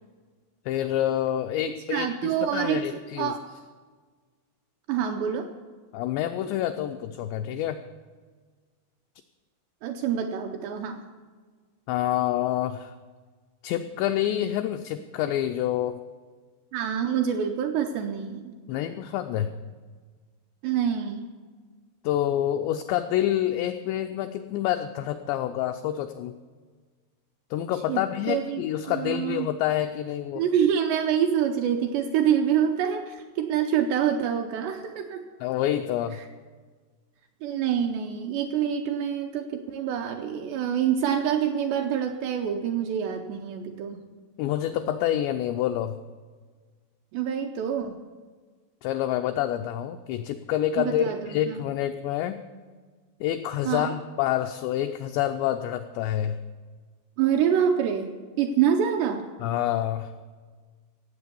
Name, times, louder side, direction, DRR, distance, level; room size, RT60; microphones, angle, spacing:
voice 1, 0.7-3.3 5.9-7.8 11.9-12.9 13.6-16.0 18.7-19.5 22.0-26.3 27.5-30.4 35.4-36.2 44.4-46.0 48.8-52.4 53.2-56.4 59.4-60.1, left 11 dB, 85° left, 7 dB, 2.5 m, -27 dB
voice 2, 1.9-2.8 3.2-3.4 4.9-5.5 9.8-11.1 16.7-18.5 20.6-21.3 27.9-28.0 28.3-29.5 30.3-35.3 36.1-36.3 37.4-44.0 47.1-48.0 50.8-51.6 53.7-53.9 57.2-59.3, right 8 dB, 80° right, 4 dB, 2.5 m, -26 dB
17.0 x 7.9 x 6.8 m, 1.5 s
omnidirectional pair, 5.6 m